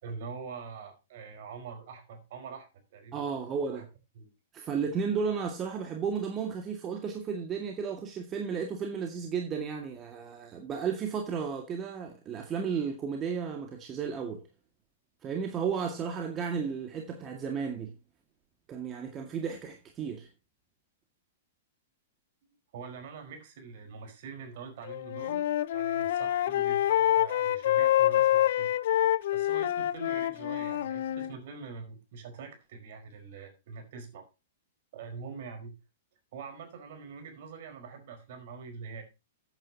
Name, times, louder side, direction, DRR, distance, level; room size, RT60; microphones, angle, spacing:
voice 1, 0.0-3.8 4.1-4.3 22.7-25.5 25.7-28.7 29.3-34.2 34.9-35.7 36.3-39.0, right 5 dB, 55° right, 4.8 m, -44 dB
voice 2, 3.1-3.9 4.5-14.4 15.2-17.9 18.7-20.3, right 6 dB, 25° right, 2.0 m, -33 dB
Wind instrument woodwind instrument, 24.9-31.3, left 12 dB, 60° left, 0.5 m, -26 dB
14.5 x 9.1 x 2.9 m
figure-of-eight pair, 105°, 0 cm